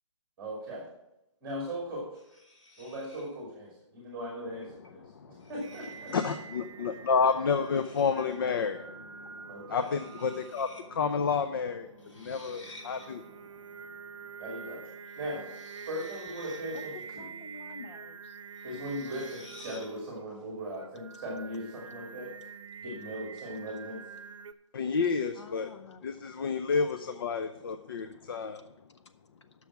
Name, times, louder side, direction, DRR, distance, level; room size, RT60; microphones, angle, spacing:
voice 1, 0.4-0.9 1.4-2.1 2.8-6.1 9.5-9.9 14.4-14.9 15.2-15.5 15.9-17.3 18.6-22.3 22.8-24.0, equal, 10° right, -3 dB, 2.3 m, -38 dB
sound 1, 2.1-3.4 4.6-4.9 5.4-6.4 7.6-8.5 9.7-10.8 11.1-11.2 12.0-13.1 15.0-17.0 18.5-20.0, left 1 dB, 80° left, 3.0 m, -53 dB
voice 2, 4.8-5.5 6.1-13.2 24.7-25.7 26.0-28.7, left 5 dB, 45° left, 10 dB, 0.6 m, -30 dB
Singing, 5.6-24.5, right 6 dB, 75° right, 0.7 m, -47 dB
voice 3, 17.1-18.4 25.3-26.0, left 4 dB, 65° left, 8 dB, 1.0 m, -48 dB
10.5 x 6.2 x 6.0 m, 0.88 s
hypercardioid pair, 170°, 16 cm